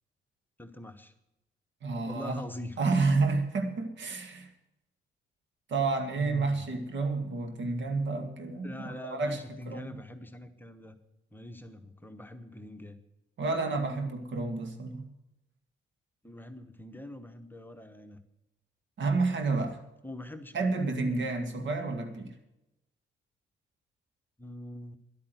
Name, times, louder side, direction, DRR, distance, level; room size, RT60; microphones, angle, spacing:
voice 1, 0.6-1.1 2.0-2.8 6.2-6.6 8.6-11.0 11.3-13.0 16.2-18.2 20.0-20.6 24.4-25.0, left 1 dB, 10° left, 7 dB, 1.0 m, -43 dB
voice 2, 1.8-2.4 2.8-4.5 5.7-9.4 9.7-10.0 13.4-15.1 19.0-19.8 20.5-22.3, right 3 dB, 65° right, 7 dB, 2.1 m, -30 dB
11.5 x 8.7 x 9.4 m, 0.91 s
cardioid pair, 90°, 20 cm